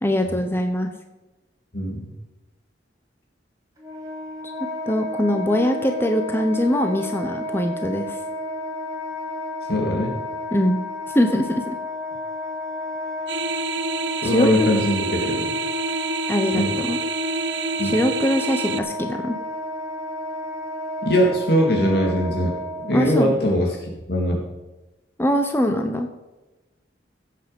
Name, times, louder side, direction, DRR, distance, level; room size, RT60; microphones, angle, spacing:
voice 1, 0.0-0.9 4.9-8.2 10.5-10.8 11.1-11.7 14.2-14.8 16.3-17.0 17.8-19.4 22.9-23.3 25.2-26.1, left 1 dB, 15° left, 5 dB, 0.8 m, -22 dB
voice 2, 1.7-2.1 9.7-10.1 14.2-15.5 16.5-16.8 17.8-18.0 21.0-22.5 22.8-24.4, equal, 60° left, -1 dB, 2.3 m, -21 dB
Wind instrument woodwind instrument, 3.8-23.3, left 1 dB, 20° right, 3.5 m, -32 dB
sound 1, 13.3-18.8, right 4 dB, 75° right, 0.8 m, -27 dB
16.5 x 8.4 x 5.3 m, 1.1 s
head